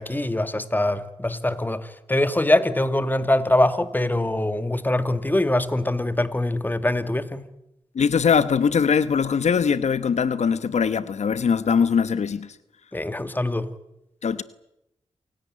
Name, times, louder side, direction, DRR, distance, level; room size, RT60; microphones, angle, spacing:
voice 1, 0.0-7.5 12.9-13.7, left 1 dB, 15° left, 2.2 m, -23 dB
voice 2, 7.9-12.5 14.2-14.4, left 6 dB, 75° left, 1.0 m, -21 dB
28.0 x 17.0 x 9.9 m
cardioid pair, 65°, 12 cm